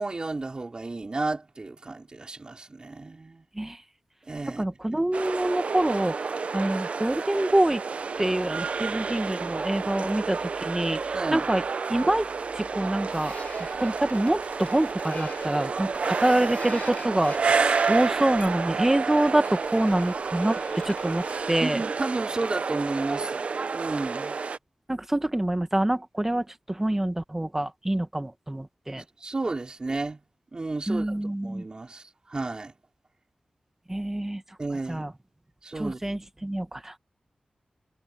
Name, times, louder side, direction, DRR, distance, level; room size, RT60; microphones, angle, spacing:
voice 1, 0.0-3.4 4.3-4.6 11.1-11.5 21.6-23.4 23.7-24.4 29.0-30.2 30.5-32.7 34.6-35.1 35.6-36.0, right 3 dB, 40° right, 4.9 m, -32 dB
voice 2, 4.6-7.8 8.2-11.6 11.9-12.3 12.5-13.3 13.8-21.8 24.9-29.0 30.9-31.6 33.9-34.4 34.9-35.1 35.8-37.0, right 1 dB, 15° right, 1.5 m, -26 dB
sound 1, 5.1-24.6, right 5 dB, 65° right, 0.7 m, -30 dB
sound 2, 13.1-21.6, left 5 dB, 80° left, 7.2 m, -47 dB
wide cardioid pair, 90°, 2 cm